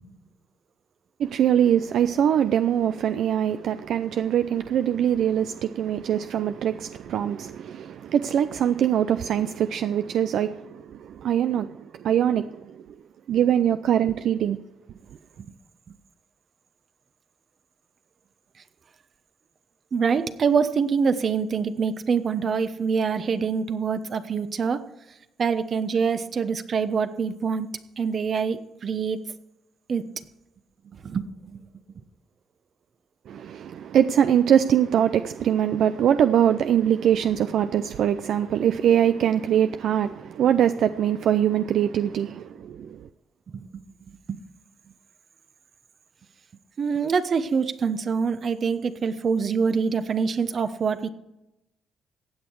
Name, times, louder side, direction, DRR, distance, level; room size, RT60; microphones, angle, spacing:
voice 1, 1.2-12.8 13.3-14.6 33.3-43.1, right 9 dB, 70° right, 0.5 m, -23 dB
voice 2, 19.9-24.9 25.4-27.7 28.0-29.2 29.9-30.1 30.9-31.6 43.5-43.7 44.3-44.4 46.8-51.1, right 5 dB, 50° right, 1.0 m, -25 dB
15.5 x 8.5 x 4.7 m
cardioid pair, 90°, 0 cm